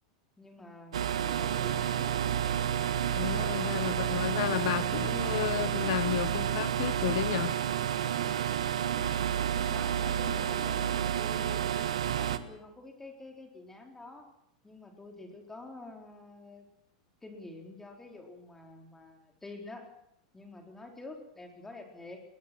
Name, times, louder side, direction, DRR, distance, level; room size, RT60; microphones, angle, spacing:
voice 1, 0.4-2.2 9.7-14.3 14.6-16.7 17.2-19.9 20.3-22.2, left 2 dB, 10° left, 3 dB, 4.2 m, -48 dB
sound 1, 0.9-12.4, right 9 dB, 85° right, 1.4 m, -30 dB
voice 2, 3.1-7.5, left 15 dB, 65° left, 15 dB, 1.3 m, -32 dB
20.5 x 20.5 x 6.2 m, 0.79 s
hypercardioid pair, 110°, 3 cm